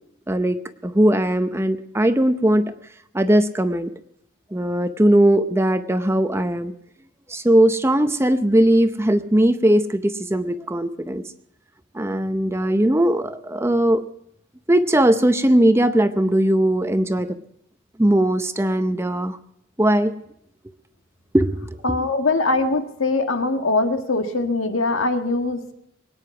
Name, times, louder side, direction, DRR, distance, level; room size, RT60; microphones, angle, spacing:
voice 1, 0.3-0.6 0.8-2.6 3.1-3.9 4.5-6.7 7.3-11.2 11.9-14.0 14.7-17.3 18.0-19.4 19.8-20.1 21.3-21.8, right 1 dB, 10° right, 10 dB, 0.7 m, -19 dB
voice 2, 21.8-25.7, left 3 dB, 80° left, 6 dB, 1.6 m, -22 dB
23.0 x 9.8 x 5.8 m, 0.75 s
head